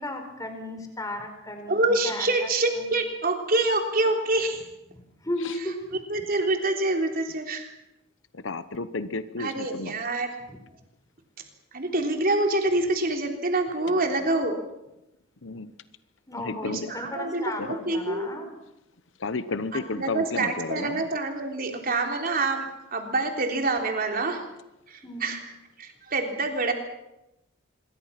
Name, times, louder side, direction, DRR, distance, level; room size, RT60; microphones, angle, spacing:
voice 1, 0.0-2.5 2.7-2.9 5.2-6.0 10.5-10.6 16.3-18.5 25.0-25.3, left 1 dB, 15° left, 5 dB, 4.4 m, -35 dB
voice 2, 1.7-4.6 6.1-7.7 9.4-10.3 11.7-14.6 16.6-18.4 19.7-24.4 24.9-25.4 25.8-26.7, right 2 dB, 45° right, 3 dB, 3.5 m, -26 dB
voice 3, 8.3-10.0 15.4-15.7 16.4-16.9 17.6-17.8 19.2-21.1, left 3 dB, 65° left, 13 dB, 0.9 m, -32 dB
26.0 x 23.0 x 6.0 m, 0.88 s
head